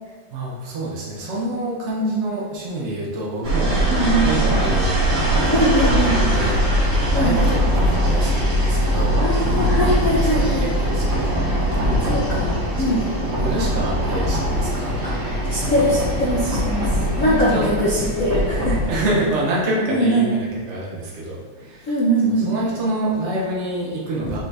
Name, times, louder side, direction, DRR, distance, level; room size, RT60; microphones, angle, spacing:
voice 1, 0.3-4.9 5.3-5.5 5.8-9.2 10.3-11.4 11.7-12.2 12.8-13.1 13.4-15.0 15.3-15.7 17.1-18.1 18.9-21.9 22.4-24.4, right 1 dB, 90° right, -4 dB, 0.6 m, -27 dB
sound 1, 3.4-19.1, equal, 70° right, 1.8 m, -21 dB
voice 2, 3.9-4.3 5.5-6.2 7.1-7.4 9.2-10.7 12.0-12.5 12.8-13.1 15.0-15.2 15.5-16.9 17.2-18.8 19.9-20.3 21.9-22.5, equal, 90° left, -7 dB, 0.7 m, -21 dB
sound 2, 5.2-17.5, right 1 dB, 10° left, 0.5 m, -34 dB
5.5 x 2.6 x 3.2 m, 1.4 s
omnidirectional pair, 2.3 m